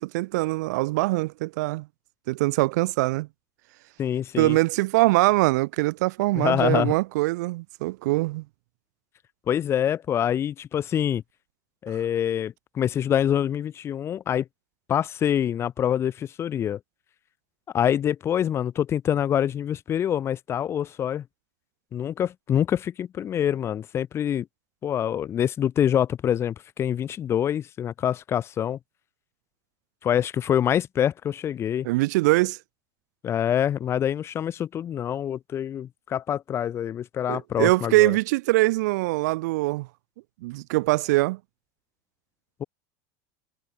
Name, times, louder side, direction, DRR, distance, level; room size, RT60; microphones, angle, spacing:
voice 1, 0.0-1.9 2.3-3.3 4.4-8.4 31.8-32.6 37.3-39.9 40.4-41.4, right 21 dB, 70° right, 2.9 m, -23 dB
voice 2, 4.0-4.6 6.3-6.9 9.5-11.2 11.8-14.5 14.9-16.8 17.7-21.2 21.9-24.5 24.8-28.8 30.0-31.9 33.2-38.2 42.6-42.7, left 9 dB, 25° left, 4.3 m, -25 dB
supercardioid pair, 150°, 9 cm